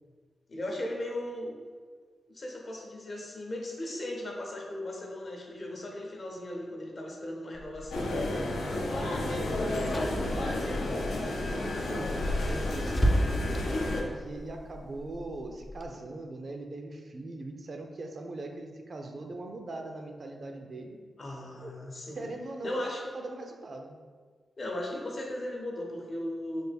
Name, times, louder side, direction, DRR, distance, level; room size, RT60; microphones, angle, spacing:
voice 1, 0.5-1.5 2.3-8.3 9.1-9.4 21.2-22.2 22.6-23.0 24.6-26.6, left 1 dB, 60° left, 0 dB, 0.7 m, -37 dB
Car / Engine, 7.5-15.9, equal, 20° left, 0.4 m, -35 dB
sound 1, 7.9-14.0, left 2 dB, 90° left, 0.4 m, -31 dB
voice 2, 8.9-13.5 13.9-21.0 21.4-21.7 22.1-24.0, right 2 dB, 60° right, 3 dB, 0.4 m, -41 dB
3.3 x 2.2 x 3.4 m, 1.5 s
cardioid pair, 50°, 0 cm